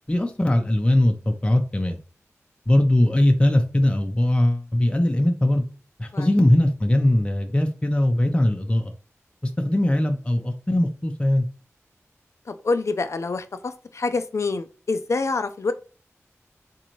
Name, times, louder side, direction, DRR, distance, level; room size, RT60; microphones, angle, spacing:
voice 1, 0.1-2.0 2.7-5.6 6.0-8.9 9.6-11.5, left 1 dB, 20° left, 4 dB, 0.6 m, -20 dB
voice 2, 12.5-15.7, left 3 dB, 60° left, 10 dB, 0.4 m, -26 dB
3.9 x 2.6 x 3.0 m, 0.37 s
cardioid pair, 45°, 5 cm